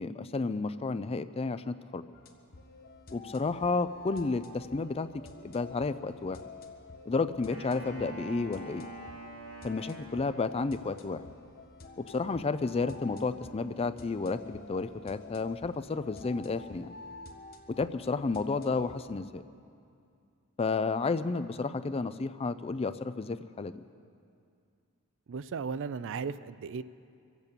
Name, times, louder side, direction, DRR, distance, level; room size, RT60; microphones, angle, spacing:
voice 1, 0.0-2.0 3.1-5.1 5.4-6.4 7.1-8.9 9.6-11.2 12.0-16.9 17.7-19.4 20.6-23.8, left 4 dB, 25° left, 13 dB, 0.4 m, -31 dB
sound 1, 2.1-19.0, left 3 dB, 40° left, 1.1 m, -49 dB
Wind instrument woodwind instrument, 7.5-11.0, right 3 dB, 80° right, 4.8 m, -47 dB
voice 2, 25.3-26.8, right 5 dB, 60° right, 15 dB, 0.4 m, -36 dB
24.0 x 8.2 x 6.9 m, 2.4 s
head